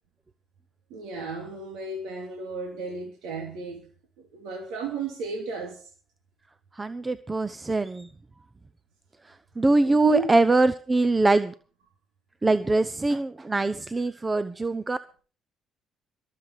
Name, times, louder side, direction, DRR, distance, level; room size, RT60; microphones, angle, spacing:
voice 1, 0.9-3.8 4.2-5.9 9.8-10.3, right 4 dB, 85° right, 3.0 m, -34 dB
voice 2, 6.8-8.1 9.6-11.5 12.4-15.0, right 2 dB, 20° right, 0.8 m, -23 dB
22.5 x 7.6 x 4.9 m
supercardioid pair, 75°, 0 cm